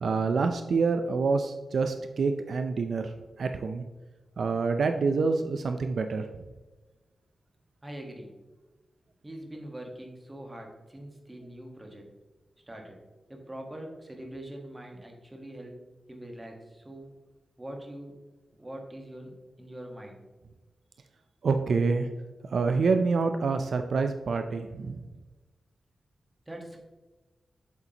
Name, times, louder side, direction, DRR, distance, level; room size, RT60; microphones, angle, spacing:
voice 1, 0.0-3.1 3.4-3.8 4.4-6.3 21.4-22.1 22.5-25.0, right 4 dB, 65° right, 7 dB, 0.5 m, -27 dB
voice 2, 7.8-8.3 9.2-12.1 12.7-13.0 13.3-15.8 16.1-17.2 17.6-18.2 18.6-20.2 26.5-26.8, right 1 dB, 15° right, 1 dB, 1.3 m, -43 dB
8.1 x 7.0 x 2.9 m, 1.2 s
wide cardioid pair, 165°, 0 cm